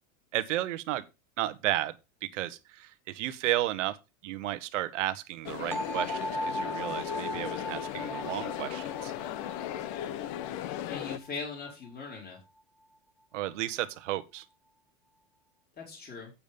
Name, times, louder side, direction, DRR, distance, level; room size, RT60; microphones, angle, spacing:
voice 1, 0.3-1.1 1.4-4.0 4.2-9.1 13.3-14.4, right 15 dB, 85° right, 1.2 m, -33 dB
sound 1, 5.4-11.2, left 11 dB, 50° left, 1.0 m, -36 dB
sound 2, 5.7-11.6, equal, 5° left, 1.6 m, -38 dB
voice 2, 10.9-12.4 15.8-16.3, left 4 dB, 25° left, 4.5 m, -40 dB
8.7 x 7.0 x 5.2 m
supercardioid pair, 130°, 36 cm